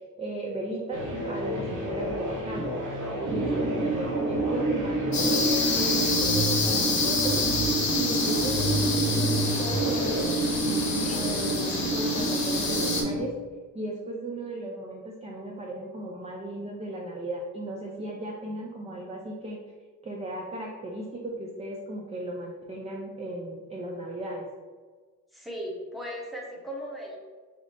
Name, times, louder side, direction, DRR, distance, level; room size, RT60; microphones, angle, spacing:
voice 1, 0.2-2.7 3.3-7.4 7.9-13.3 13.7-19.6 20.0-24.5, right 1 dB, 20° right, -1 dB, 0.4 m, -36 dB
sound 1, 0.9-10.2, right 1 dB, 60° right, 1.0 m, -32 dB
sound 2, 3.3-13.2, right 3 dB, 80° right, 0.8 m, -29 dB
voice 2, 3.4-3.9 11.0-11.4 25.3-27.2, equal, ahead, -2 dB, 0.8 m, -37 dB
sound 3, 5.1-13.0, left 4 dB, 50° left, 1.0 m, -28 dB
5.1 x 2.0 x 4.0 m, 1.5 s
cardioid pair, 130°, 35 cm